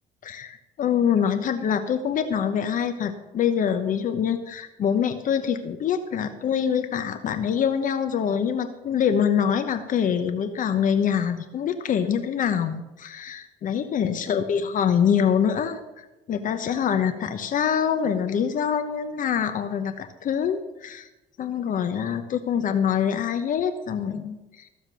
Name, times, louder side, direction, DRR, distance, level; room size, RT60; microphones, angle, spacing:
voice 1, 0.2-21.1 21.4-24.7, left 8 dB, 50° left, 9 dB, 1.0 m, -25 dB
14.5 x 7.4 x 6.2 m, 1.0 s
cardioid pair, 110°, 17 cm